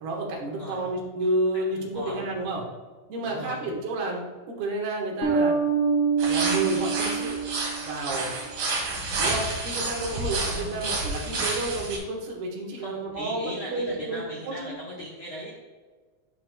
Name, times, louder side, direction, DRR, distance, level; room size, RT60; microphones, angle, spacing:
voice 1, 0.0-2.7 3.1-5.6 6.2-7.4 7.8-8.4 9.2-14.8, right 2 dB, 80° right, -1 dB, 3.3 m, -30 dB
voice 2, 1.8-2.2 3.2-3.6 10.4-10.8 12.8-15.6, equal, 75° left, -5 dB, 1.2 m, -38 dB
Bass guitar, 5.2-8.2, right 5 dB, 30° right, 1.2 m, -25 dB
sound 1, 6.2-12.0, right 2 dB, 65° right, 3.5 m, -30 dB
12.5 x 6.1 x 2.2 m, 1.4 s
omnidirectional pair, 4.5 m